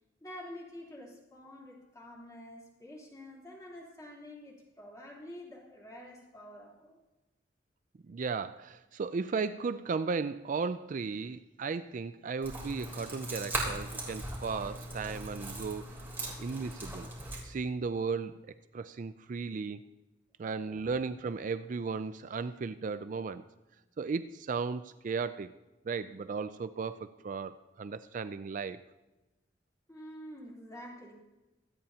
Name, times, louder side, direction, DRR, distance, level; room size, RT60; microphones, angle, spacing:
voice 1, 0.2-7.0 20.7-21.0 29.9-31.1, left 1 dB, 20° left, -4 dB, 3.4 m, -48 dB
voice 2, 8.0-16.1 16.4-17.1 17.4-19.8 20.4-23.4 24.0-25.5 25.9-28.8, right 5 dB, 45° right, 12 dB, 0.4 m, -35 dB
sound 1, 12.4-17.4, right 1 dB, 15° right, 3.2 m, -39 dB
24.5 x 8.8 x 2.8 m, 1.1 s
head